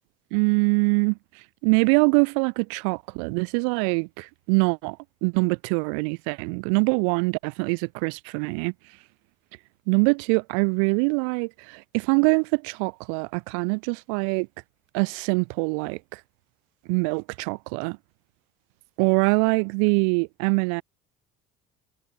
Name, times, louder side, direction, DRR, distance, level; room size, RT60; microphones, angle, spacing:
voice 1, 0.3-1.1 1.6-5.0 5.2-8.7 9.9-11.5 11.9-14.5 14.9-16.0 16.9-18.0 19.0-20.8, right 40 dB or more, 85° right, 1.4 m, -23 dB
cardioid pair, 120°, 16 cm